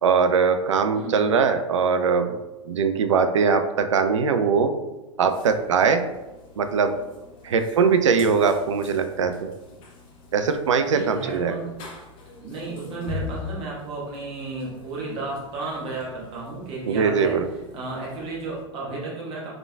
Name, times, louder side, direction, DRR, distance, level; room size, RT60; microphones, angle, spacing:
voice 1, 0.0-2.4 2.7-4.7 5.2-6.0 6.6-6.9 7.4-9.5 10.3-11.6 16.9-17.5, right 5 dB, 70° right, 8 dB, 0.4 m, -21 dB
voice 2, 0.9-1.3 10.8-11.7 12.4-17.4 17.7-19.5, right 3 dB, 35° right, -4 dB, 1.3 m, -33 dB
sound 1, 5.3-18.7, left 4 dB, 35° left, 0.8 m, -43 dB
3.7 x 3.2 x 2.3 m, 1.1 s
figure-of-eight pair, 90°, 16 cm